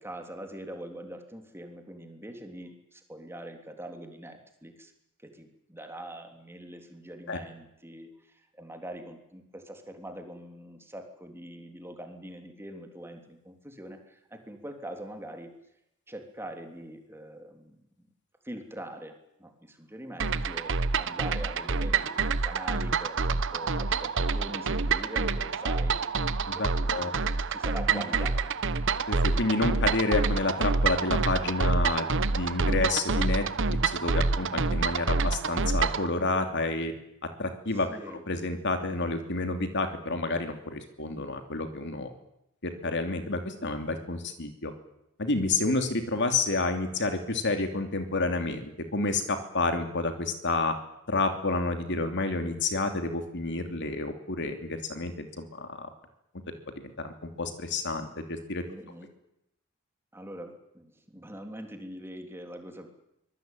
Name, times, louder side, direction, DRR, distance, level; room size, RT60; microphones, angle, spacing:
voice 1, 0.0-4.9 5.2-15.5 16.1-17.8 18.4-26.0 26.5-27.2 27.5-28.5 37.9-38.2 58.7-59.1 60.1-62.9, right 1 dB, 10° right, 4 dB, 3.3 m, -43 dB
sound 1, 20.2-36.1, right 4 dB, 60° right, 1.1 m, -27 dB
voice 2, 26.5-27.1 27.9-28.0 29.1-32.1 32.3-36.9 37.4-37.9 38.3-42.1 42.6-44.7 45.2-50.7 51.1-55.9 57.0-58.6, left 3 dB, 55° left, 6 dB, 3.0 m, -29 dB
25.0 x 20.5 x 9.2 m, 0.84 s
head